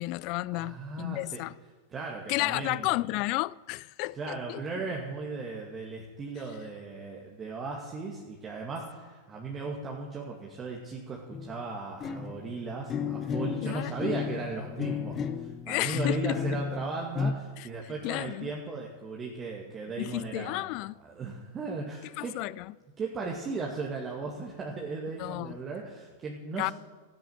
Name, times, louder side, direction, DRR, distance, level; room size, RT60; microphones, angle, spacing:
voice 1, 0.0-1.5 2.3-4.6 13.6-13.9 15.7-16.4 17.6-17.7 18.0-18.5 20.0-20.9 22.2-22.7 25.2-25.6 26.6-26.7, left 21 dB, 45° left, 0.4 m, -32 dB
voice 2, 0.5-1.4 1.9-2.9 4.1-20.6 21.0-22.4 23.0-26.7, right 4 dB, 25° right, 2.2 m, -37 dB
sound 1, 11.3-11.7 12.0-17.3, left 6 dB, 30° left, 1.0 m, -33 dB
14.5 x 10.5 x 8.0 m
figure-of-eight pair, 95°, 0 cm